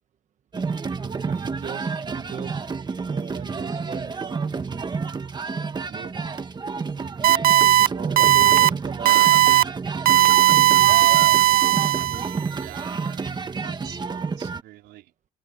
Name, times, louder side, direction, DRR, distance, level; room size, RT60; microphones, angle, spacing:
sound 1, 0.5-14.6, right 4 dB, 25° right, 1.7 m, -30 dB
voice 1, 1.3-2.6 3.1-5.1 5.7-6.2 7.9-9.3, right 8 dB, 45° right, 1.1 m, -39 dB
sound 2, 7.2-7.9 8.2-8.7 9.1-9.6 10.1-12.4, right 15 dB, 60° right, 0.5 m, -16 dB
voice 2, 12.6-13.3 13.6-15.1, right 16 dB, 85° right, 3.9 m, -45 dB
open air
cardioid pair, 110°, 17 cm